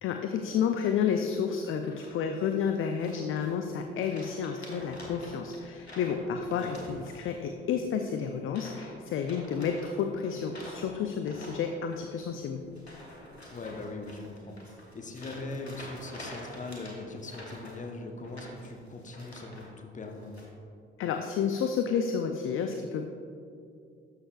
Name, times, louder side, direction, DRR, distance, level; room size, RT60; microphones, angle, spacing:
voice 1, 0.0-12.6 21.0-23.0, left 7 dB, 40° left, 6 dB, 0.5 m, -30 dB
sound 1, 1.8-2.4 3.0-3.7 4.0-7.5 7.7-8.0 8.5-8.9 9.2-19.7 20.0-20.5, left 1 dB, 90° left, 0.9 m, -48 dB
voice 2, 6.5-6.9 13.5-14.6 14.9-20.3, left 2 dB, 25° left, 3 dB, 1.0 m, -40 dB
12.0 x 6.5 x 2.4 m, 2.5 s
figure-of-eight pair, 45°, 31 cm